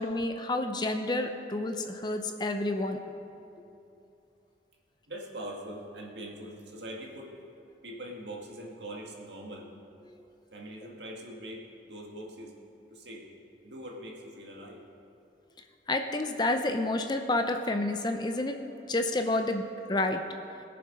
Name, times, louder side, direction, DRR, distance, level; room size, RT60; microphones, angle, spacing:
voice 1, 0.0-3.0 15.9-18.6 18.9-20.2, left 2 dB, 25° left, 6 dB, 0.5 m, -29 dB
voice 2, 5.1-7.3 7.8-9.7 10.5-12.5 12.9-13.3 13.6-14.8, right 1 dB, 75° right, -1 dB, 1.8 m, -42 dB
20.0 x 6.9 x 5.2 m, 2.7 s
head